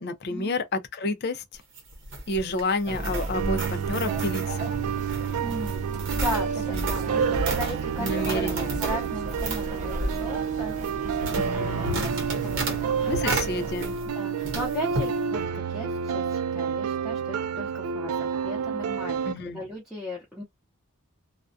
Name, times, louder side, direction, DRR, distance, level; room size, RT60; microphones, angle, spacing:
voice 1, 0.0-1.6 2.3-4.7 6.7-7.1 8.0-8.8 11.3-12.1 13.1-13.9 19.2-19.6, left 2 dB, 50° left, 0.4 m, -30 dB
sound 1, 1.5-14.2 14.4-15.1, right 2 dB, 60° right, 1.0 m, -33 dB
sound 2, 2.9-13.7, right 2 dB, 35° right, 0.5 m, -36 dB
sound 3, 3.3-19.3, right 7 dB, 90° right, 0.3 m, -29 dB
voice 2, 5.4-6.5 6.8-8.4 8.8-10.7 11.5-13.4 14.2-20.4, equal, ahead, 0.7 m, -37 dB
2.3 x 2.1 x 2.6 m
head